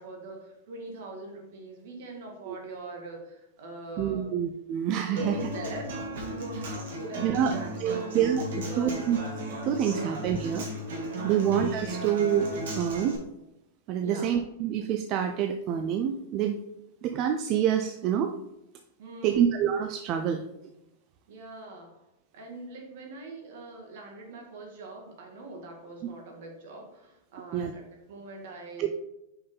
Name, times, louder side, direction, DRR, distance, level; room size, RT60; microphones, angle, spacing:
voice 1, 0.0-4.3 5.1-5.9 6.2-8.0 8.6-8.9 11.3-11.6 14.0-14.3 19.0-19.4 21.3-22.0 22.3-28.9, right 2 dB, 60° right, 1 dB, 2.0 m, -42 dB
voice 2, 4.0-5.3 7.2-7.5 7.8-9.2 9.6-10.7 11.0-13.2 13.9-16.6 17.0-18.3 19.2-20.4 27.5-27.7 28.8-28.9, right 9 dB, 35° right, 5 dB, 0.4 m, -27 dB
Human voice / Acoustic guitar, 5.2-13.1, equal, 80° right, 2.2 m, -35 dB
5.7 x 5.4 x 3.8 m, 0.89 s
supercardioid pair, 160°, 0 cm